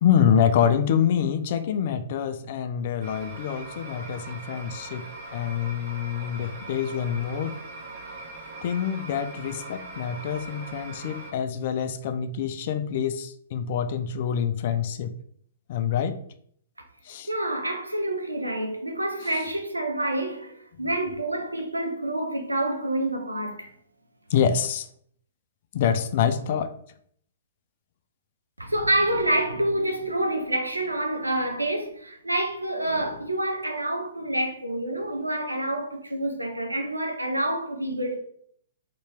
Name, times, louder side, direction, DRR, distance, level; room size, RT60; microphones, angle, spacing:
voice 1, 0.0-5.1 5.3-7.6 8.6-15.2 15.7-16.2 17.1-17.3 19.3-19.4 20.7-20.9 24.3-24.9 25.7-26.8, left 8 dB, 45° left, 0.3 m, -26 dB
sound 1, 3.0-11.3, right 2 dB, 45° right, 1.0 m, -41 dB
voice 2, 17.3-23.7 28.6-38.2, right 1 dB, 90° right, 0.6 m, -27 dB
2.9 x 2.7 x 3.3 m
figure-of-eight pair, 115°, 0 cm